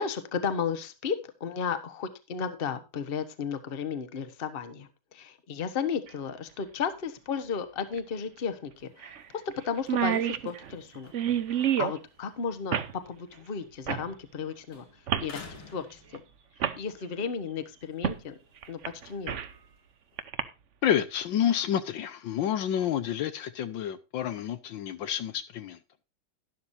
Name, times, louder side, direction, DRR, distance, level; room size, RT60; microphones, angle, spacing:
voice 1, 0.0-11.1 11.5-14.9 15.2-16.2 16.8-18.4 18.7-19.3, left 6 dB, 35° left, 1.1 m, -34 dB
sound 1, 6.1-6.2 7.9-8.0 8.4-8.5 9.0-9.2 9.5-9.6 9.8-12.0 12.7-12.9 13.9-14.1 15.1-15.3 16.1-16.2 16.6-16.8 18.0-18.2 18.6-19.6 20.2-20.4, right 9 dB, 60° right, 0.8 m, -29 dB
sound 2, 8.8-14.4 14.7-16.7 17.2-20.2, left 4 dB, 90° left, 3.3 m, -54 dB
voice 2, 20.8-25.8, left 10 dB, 70° left, 1.4 m, -29 dB
12.0 x 11.5 x 2.7 m
omnidirectional pair, 2.2 m